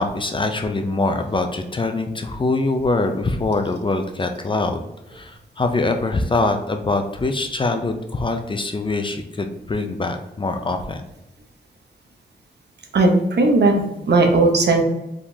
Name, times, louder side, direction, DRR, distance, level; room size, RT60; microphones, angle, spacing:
voice 1, 0.0-4.8 5.1-11.1, left 2 dB, 25° left, 5 dB, 0.4 m, -23 dB
voice 2, 12.9-14.8, right 2 dB, 65° right, 2 dB, 0.8 m, -17 dB
4.8 x 3.6 x 2.7 m, 0.94 s
wide cardioid pair, 180°, 18 cm